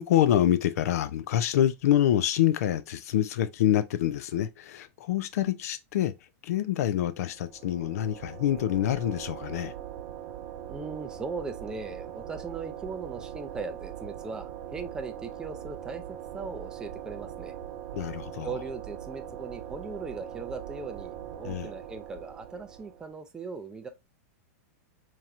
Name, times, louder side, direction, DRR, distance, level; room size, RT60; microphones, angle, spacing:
voice 1, 0.0-6.1 6.4-9.7 17.9-18.6 21.4-21.7, left 11 dB, 75° left, 0.4 m, -26 dB
sound 1, 7.3-23.1, right 10 dB, 45° right, 0.9 m, -41 dB
voice 2, 10.7-17.5 18.4-23.9, right 4 dB, 10° right, 0.4 m, -39 dB
4.5 x 2.9 x 2.4 m
supercardioid pair, 155°, 8 cm